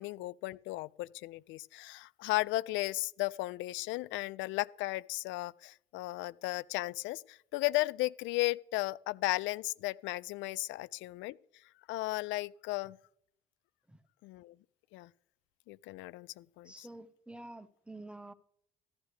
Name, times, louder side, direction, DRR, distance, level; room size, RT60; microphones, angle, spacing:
voice 1, 0.0-11.4 11.9-13.0 14.2-14.5 14.9-15.1 15.7-16.9, left 19 dB, 75° left, 0.4 m, -35 dB
voice 2, 16.6-18.3, right 2 dB, 5° right, 1.1 m, -49 dB
14.0 x 11.5 x 3.3 m
supercardioid pair, 65°, 20 cm